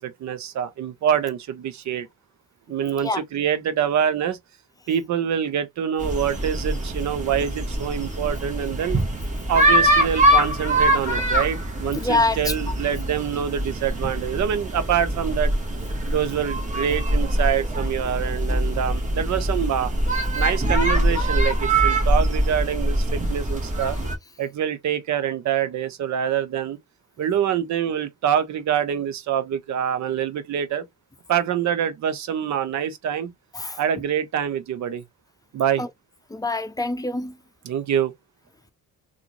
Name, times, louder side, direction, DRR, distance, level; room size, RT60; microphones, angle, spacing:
voice 1, 0.0-2.1 2.7-4.4 4.9-9.0 9.5-15.5 16.1-19.9 20.3-24.0 24.4-26.8 27.2-30.8 31.3-33.3 33.8-35.0 35.5-35.9 37.6-38.1, right 9 dB, 70° right, 0.9 m, -25 dB
sound 1, 6.0-24.2, right 1 dB, 25° right, 1.6 m, -23 dB
voice 2, 11.9-12.5 33.5-33.8 35.8-35.9 36.3-37.3, left 2 dB, 10° left, 0.6 m, -25 dB
3.6 x 2.6 x 3.0 m
cardioid pair, 90°, 30 cm